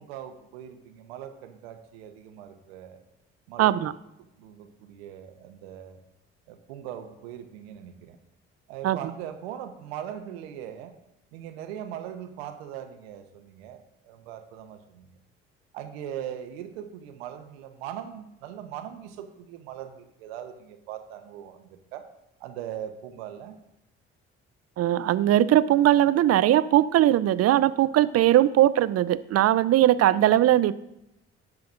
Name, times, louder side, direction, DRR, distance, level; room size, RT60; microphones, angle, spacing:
voice 1, 0.0-3.0 3.5-3.9 4.2-6.0 6.5-8.2 8.7-10.9 11.3-15.1 15.7-22.1 22.4-23.6, right 10 dB, 85° right, 7 dB, 0.9 m, -40 dB
voice 2, 3.6-3.9 8.8-9.0 24.8-30.7, right 13 dB, 55° right, 16 dB, 0.5 m, -20 dB
17.0 x 5.9 x 2.6 m, 0.86 s
hypercardioid pair, 50°, 30 cm